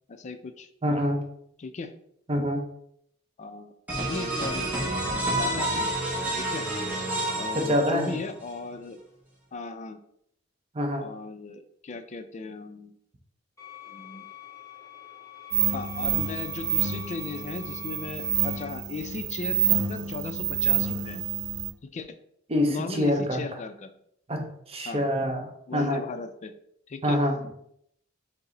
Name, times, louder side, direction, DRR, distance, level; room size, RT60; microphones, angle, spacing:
voice 1, 0.1-0.7 1.6-1.9 3.4-3.7 4.1-5.9 6.3-6.7 7.3-9.0 9.5-10.0 11.0-13.0 13.9-14.3 15.7-21.2 21.8-22.2 22.7-23.9 24.9-25.0 25.7-26.5 26.9-27.2, left 4 dB, 35° left, 9 dB, 0.3 m, -37 dB
voice 2, 0.8-1.2 2.3-2.7 7.5-8.1 10.7-11.1 22.5-23.5 24.3-26.0 27.0-27.4, equal, 30° right, 4 dB, 0.6 m, -26 dB
sound 1, 3.9-8.5, right 1 dB, 10° right, 0.9 m, -29 dB
sound 2, 13.6-18.7, left 12 dB, 15° left, 1.1 m, -45 dB
sound 3, 15.5-21.7, right 9 dB, 70° right, 0.4 m, -28 dB
5.3 x 2.0 x 3.8 m, 0.73 s
head